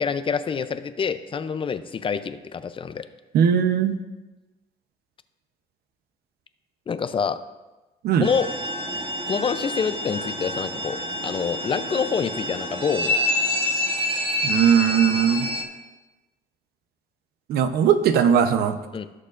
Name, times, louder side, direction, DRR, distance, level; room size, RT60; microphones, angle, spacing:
voice 1, 0.0-3.0 6.9-7.4 8.2-8.5 9.3-11.0 11.2-13.2 18.9-19.1, left 6 dB, 30° left, 11 dB, 0.5 m, -26 dB
voice 2, 3.3-4.0 8.0-8.3 14.4-15.5 17.5-18.8, right 8 dB, 70° right, 9 dB, 0.8 m, -19 dB
sound 1, 8.2-15.6, left 1 dB, 30° right, 1.2 m, -27 dB
16.5 x 6.6 x 2.5 m, 1.1 s
cardioid pair, 110°, 17 cm